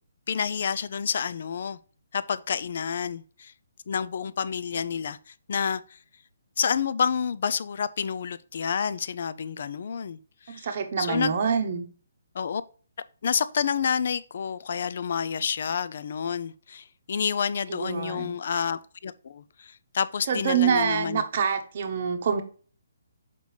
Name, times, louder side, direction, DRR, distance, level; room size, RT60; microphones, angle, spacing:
voice 1, 0.3-1.8 2.1-3.5 3.9-6.0 6.6-10.2 10.5-10.7 11.0-11.4 12.3-12.6 13.2-21.2, left 7 dB, 40° left, 0.4 m, -29 dB
voice 2, 10.5-11.8 17.7-18.4 20.3-22.4, right 7 dB, 35° right, 0.9 m, -26 dB
6.6 x 5.2 x 3.2 m
hypercardioid pair, 180°, 0 cm